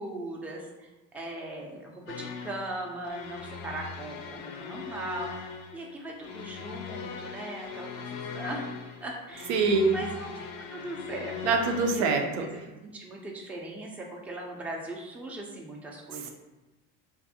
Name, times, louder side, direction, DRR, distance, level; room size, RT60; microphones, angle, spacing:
voice 1, 0.0-8.6 9.0-9.5 9.8-11.4 11.9-12.0 12.4-16.3, right 1 dB, 5° right, -1 dB, 0.3 m, -39 dB
sound 1, 2.1-12.1, left 6 dB, 70° left, 0.5 m, -40 dB
voice 2, 9.5-10.0 11.4-12.5, right 4 dB, 85° right, 3 dB, 0.5 m, -24 dB
2.5 x 2.4 x 2.6 m, 1.1 s
supercardioid pair, 100°, 34 cm